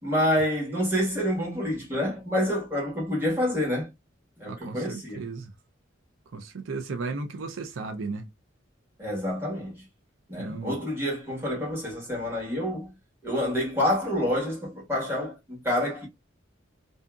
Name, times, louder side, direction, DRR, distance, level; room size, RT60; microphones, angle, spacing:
voice 1, 0.0-3.9 4.4-5.2 9.0-9.8 10.3-12.9 13.2-16.1, left 1 dB, 10° right, 1.4 m, -28 dB
voice 2, 4.5-5.5 6.3-8.3 10.4-10.8, right 3 dB, 85° right, 0.5 m, -35 dB
2.7 x 2.5 x 2.2 m
head